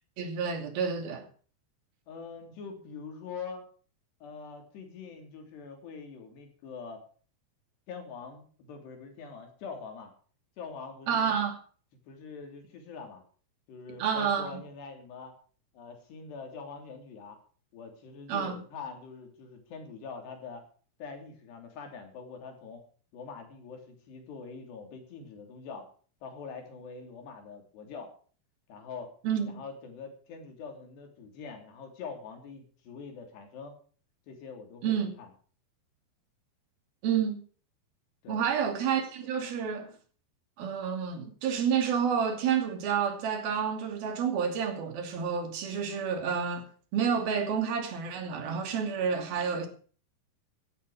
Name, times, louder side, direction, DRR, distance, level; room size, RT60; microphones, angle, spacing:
voice 1, 0.2-1.3 11.1-11.6 14.0-14.5 18.3-18.6 29.2-29.6 34.8-35.1 37.0-37.4 38.3-39.9 40.6-46.6 46.9-49.7, right 7 dB, 65° right, 4.3 m, -29 dB
voice 2, 2.1-3.6 4.2-7.0 7.9-10.1 10.6-11.3 12.1-13.2 13.7-15.3 15.7-17.4 17.7-20.6 21.0-22.8 23.1-25.9 26.2-28.1 28.7-29.1 29.5-33.8 34.3-35.3 38.2-38.5, left 5 dB, 85° left, 5.5 m, -44 dB
16.0 x 11.5 x 4.9 m
omnidirectional pair, 4.7 m